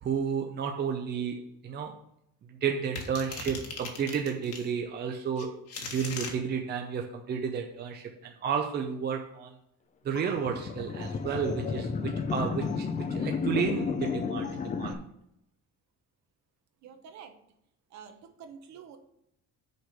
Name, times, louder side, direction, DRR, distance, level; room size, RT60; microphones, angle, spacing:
voice 1, 0.0-2.0 2.5-9.5 10.0-15.0, right 6 dB, 30° right, 3 dB, 0.6 m, -32 dB
sound 1, 3.0-4.7 5.4-6.3, left 4 dB, 50° left, 1.6 m, -39 dB
sound 2, 10.2-14.9, left 5 dB, 25° left, 0.5 m, -32 dB
voice 2, 16.8-17.4 17.9-19.0, right 7 dB, 60° right, 6 dB, 1.2 m, -48 dB
6.5 x 5.0 x 6.7 m, 0.78 s
cardioid pair, 180°, 32 cm